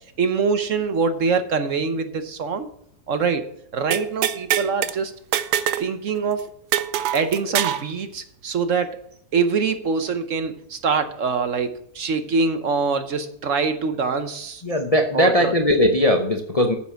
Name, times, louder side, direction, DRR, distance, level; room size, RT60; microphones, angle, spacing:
voice 1, 0.2-2.7 3.1-3.5 3.7-5.1 5.8-6.5 7.1-9.0 9.3-14.6 15.1-15.5, right 5 dB, 60° right, 9 dB, 1.1 m, -24 dB
sound 1, 3.9-4.9 5.3-5.9 6.2-6.3 6.7-7.9, right 11 dB, 85° right, 1.2 m, -23 dB
voice 2, 14.6-16.7, equal, 30° left, 4 dB, 0.7 m, -19 dB
9.6 x 7.4 x 5.8 m, 0.71 s
omnidirectional pair, 1.7 m